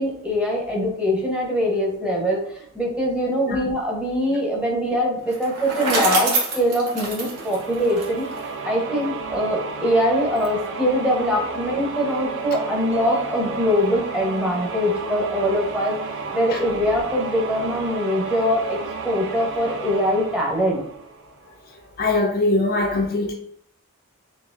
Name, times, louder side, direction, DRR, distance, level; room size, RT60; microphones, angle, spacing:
voice 1, 0.0-8.3 8.6-16.0 16.3-18.8 19.0-20.8, equal, 5° right, -2 dB, 0.8 m, -23 dB
Bicycle, 5.3-8.5, right 2 dB, 85° right, 1.1 m, -25 dB
sound 1, 7.1-21.7, right 4 dB, 60° right, 0.5 m, -32 dB
sound 2, 12.9-17.0, right 2 dB, 35° right, 1.4 m, -40 dB
voice 2, 22.0-23.3, left 2 dB, 45° left, 1 dB, 0.5 m, -21 dB
4.0 x 2.9 x 2.5 m, 0.68 s
head